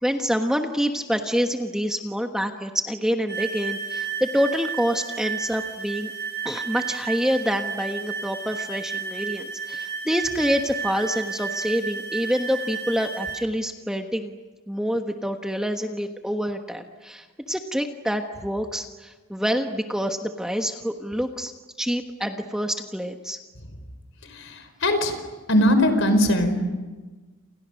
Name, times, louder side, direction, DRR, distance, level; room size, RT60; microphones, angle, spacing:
voice 1, 0.0-6.1 6.4-14.3 14.7-21.5 21.8-23.4, equal, 5° right, 4 dB, 1.3 m, -27 dB
sound 1, 3.3-13.4, right 6 dB, 50° right, 2.3 m, -32 dB
voice 2, 24.8-25.1 25.5-26.6, left 1 dB, 60° left, 8 dB, 4.9 m, -19 dB
29.5 x 29.0 x 6.5 m, 1.3 s
head